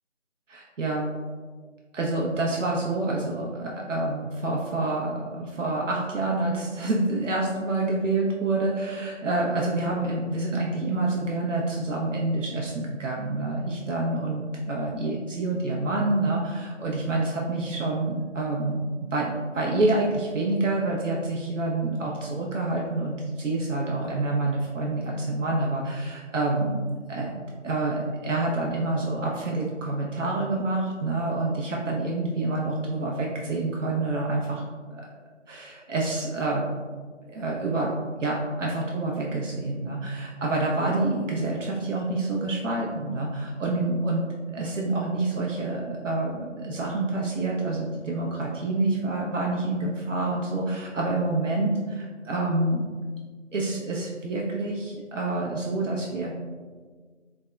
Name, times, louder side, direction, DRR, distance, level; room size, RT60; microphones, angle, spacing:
voice 1, 0.5-1.1 1.9-18.8 19.1-26.8 27.1-27.3 27.6-34.6 34.9-35.0 35.5-36.6 37.3-44.2 44.5-52.9 53.5-56.3, right 2 dB, 75° right, -2 dB, 0.5 m, -27 dB
3.4 x 2.0 x 2.2 m, 1.5 s
figure-of-eight pair, 165°, 38 cm